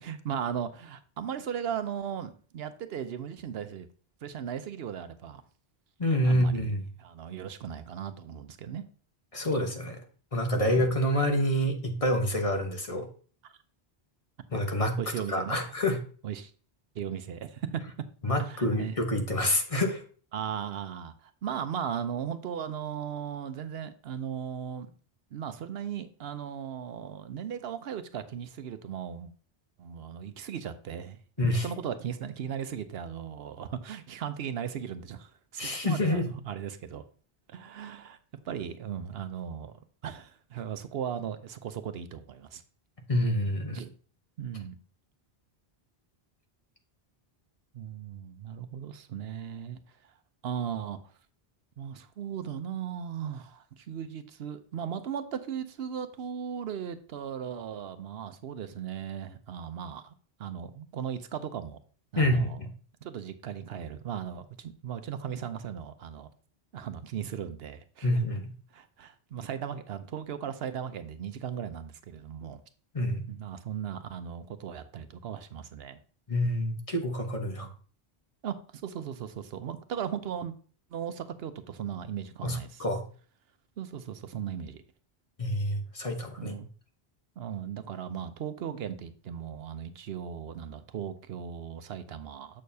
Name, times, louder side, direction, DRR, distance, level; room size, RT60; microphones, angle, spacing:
voice 1, 0.0-3.9 4.2-5.4 6.2-8.8 10.5-10.9 15.0-15.6 16.2-16.5 16.9-17.8 18.4-19.0 20.3-24.9 25.3-29.3 29.8-31.2 31.5-37.0 37.5-38.2 38.4-39.7 40.0-42.6 43.7-43.9 44.4-44.8 47.7-49.8 50.4-51.0 51.8-60.1 60.4-61.8 62.1-62.6 63.0-66.3 66.7-68.1 68.7-72.6 73.3-76.0 77.6-77.7 78.4-78.5 78.8-80.5 80.9-82.9 83.8-84.8 86.4-86.7 87.4-92.6, right 8 dB, 75° right, 0.9 m, -37 dB
voice 2, 6.0-6.8 9.3-10.0 10.3-13.1 14.5-15.0 15.3-16.0 18.2-20.0 31.4-31.7 35.6-36.3 43.1-43.8 62.2-62.7 68.0-68.5 72.9-73.3 76.3-77.7 82.4-83.0 85.4-86.5, left 1 dB, 35° left, 1.1 m, -27 dB
7.5 x 6.5 x 2.7 m
omnidirectional pair, 1.0 m